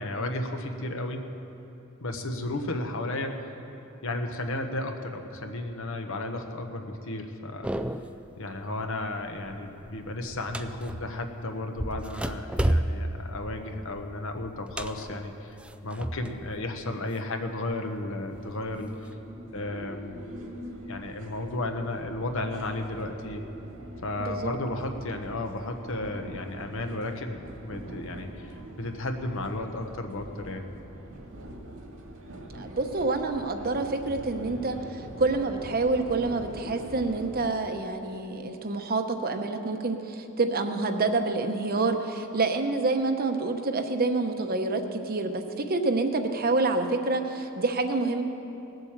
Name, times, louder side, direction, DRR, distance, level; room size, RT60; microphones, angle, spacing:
voice 1, 0.0-1.3 2.0-3.5 4.0-7.7 8.4-15.6 15.8-19.1 19.5-20.2 20.8-23.4 24.0-30.7, left 2 dB, 65° left, 5 dB, 1.1 m, -33 dB
sound 1, 7.6-8.3 8.7-9.0 9.4-11.3 11.8-16.5 16.8-17.8 18.3-19.1, right 1 dB, 5° right, 0.3 m, -32 dB
sound 2, 18.3-37.5, right 1 dB, 75° right, 1.9 m, -44 dB
voice 2, 24.2-24.5 32.6-48.2, right 3 dB, 45° right, 6 dB, 0.9 m, -27 dB
18.5 x 7.9 x 7.3 m, 2.9 s
head